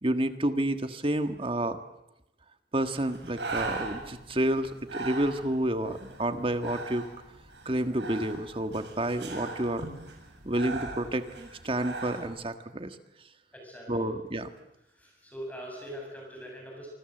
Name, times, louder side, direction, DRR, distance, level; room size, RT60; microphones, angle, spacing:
voice 1, 0.0-1.8 2.7-7.0 7.6-9.9 10.4-13.0 13.9-14.5, right 1 dB, 30° right, 8 dB, 1.6 m, -29 dB
Breathing, 2.8-12.3, right 3 dB, 85° right, 7.6 m, -40 dB
voice 2, 13.5-14.1 15.0-16.9, equal, 10° left, 0 dB, 7.5 m, -42 dB
26.5 x 25.5 x 7.9 m, 0.88 s
head